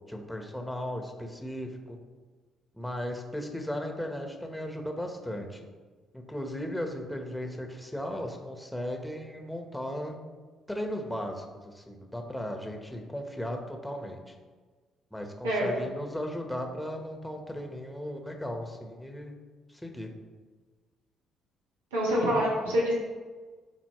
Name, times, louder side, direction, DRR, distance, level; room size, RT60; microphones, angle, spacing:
voice 1, 0.1-2.0 2.7-5.6 6.1-10.1 10.7-11.4 11.7-14.3 15.1-19.3 19.7-20.1, equal, 5° left, 3 dB, 1.3 m, -36 dB
voice 2, 21.9-22.9, equal, 90° right, -6 dB, 1.7 m, -26 dB
11.0 x 3.9 x 3.2 m, 1.4 s
hypercardioid pair, 50°, 0 cm